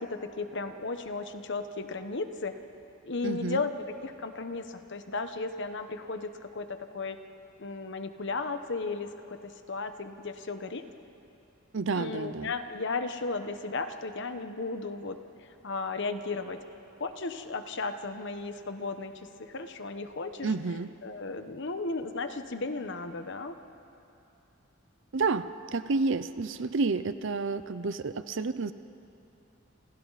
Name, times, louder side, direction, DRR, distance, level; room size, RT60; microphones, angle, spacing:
voice 1, 0.0-2.5 3.0-3.7 4.0-7.2 7.6-10.9 11.9-16.6 17.0-20.5 21.0-23.6, left 3 dB, 60° left, 8 dB, 1.2 m, -35 dB
voice 2, 3.2-3.6 11.7-12.5 20.4-20.9 25.1-28.7, right 4 dB, 65° right, 13 dB, 0.6 m, -30 dB
28.0 x 28.0 x 4.2 m, 2.7 s
head